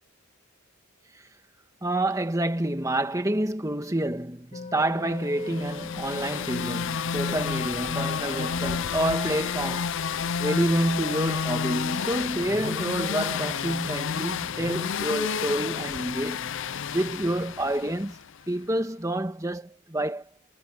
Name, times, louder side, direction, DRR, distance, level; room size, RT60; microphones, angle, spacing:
voice 1, 1.8-9.9 10.4-16.5 16.9-18.2 18.5-20.2, right 1 dB, 15° right, 1.8 m, -28 dB
sound 1, 4.5-16.9, left 5 dB, 35° left, 1.6 m, -45 dB
sound 2, 5.4-18.3, left 6 dB, 55° left, 0.5 m, -30 dB
sound 3, 6.1-15.1, right 1 dB, 70° right, 3.2 m, -49 dB
head